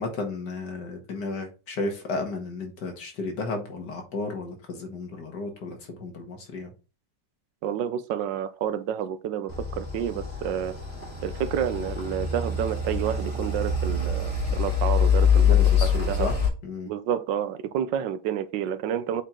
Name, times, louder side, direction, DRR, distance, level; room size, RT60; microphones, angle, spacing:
voice 1, 0.0-6.7 15.4-16.3 16.6-16.9, left 3 dB, 70° left, 2.3 m, -33 dB
voice 2, 7.6-10.8 11.2-15.5 15.8-16.3 16.9-19.2, right 9 dB, 85° right, 1.4 m, -29 dB
sound 1, 9.5-16.5, left 6 dB, 5° right, 2.6 m, -24 dB
7.6 x 4.6 x 3.8 m
omnidirectional pair, 1.9 m